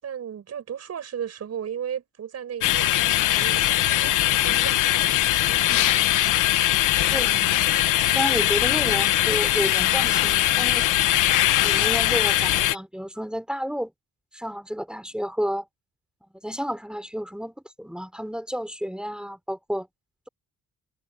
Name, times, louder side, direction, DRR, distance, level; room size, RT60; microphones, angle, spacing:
voice 1, 0.0-4.8 7.1-7.6, right 8 dB, 55° right, 7.4 m, -35 dB
sound 1, 2.6-12.7, left 14 dB, 85° left, 1.3 m, -21 dB
voice 2, 8.0-10.9 11.6-13.9 14.3-15.7 16.4-19.9, equal, 5° right, 4.6 m, -31 dB
cardioid pair, 90°, 30 cm